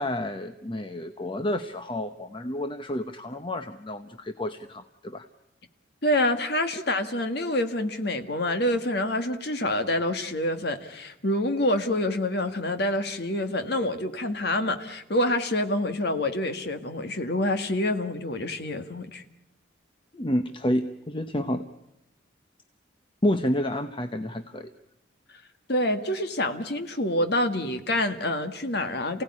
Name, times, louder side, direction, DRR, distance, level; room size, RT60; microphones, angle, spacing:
voice 1, 0.0-5.3 20.1-21.6 23.2-24.7, left 1 dB, 25° left, 8 dB, 0.9 m, -29 dB
voice 2, 6.0-19.2 25.7-29.2, left 1 dB, 55° left, 7 dB, 1.8 m, -27 dB
28.5 x 17.0 x 9.8 m, 0.88 s
head